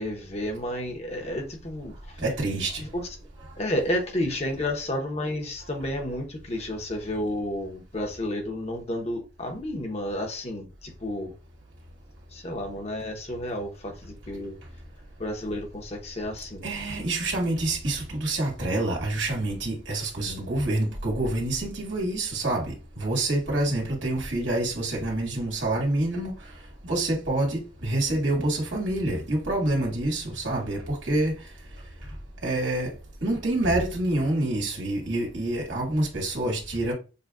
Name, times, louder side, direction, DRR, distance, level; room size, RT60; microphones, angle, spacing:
voice 1, 0.0-2.2 2.8-3.1 3.6-11.3 12.3-14.6 15.2-16.7, left 1 dB, 35° left, 0.9 m, -31 dB
voice 2, 2.2-2.8 16.6-26.3 26.8-31.3 32.4-32.9 33.2-36.9, right 2 dB, 75° right, 1.9 m, -27 dB
6.7 x 2.2 x 2.4 m
head